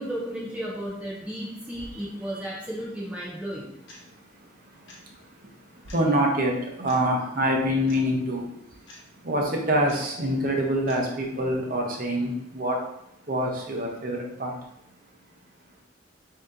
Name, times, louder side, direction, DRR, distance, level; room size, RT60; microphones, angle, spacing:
voice 1, 0.0-3.8, equal, 5° right, -4 dB, 0.6 m, -34 dB
voice 2, 1.8-2.5 3.9-12.8 13.2-14.6, equal, 45° right, 0 dB, 0.8 m, -27 dB
sound 1, 3.9-4.0 4.9-5.0 5.9-6.0 6.9-7.0 7.9-8.0 8.9-9.0 9.9-10.0 10.9-11.0, left 2 dB, 70° left, 1.0 m, -47 dB
3.9 x 2.8 x 3.7 m, 0.78 s
head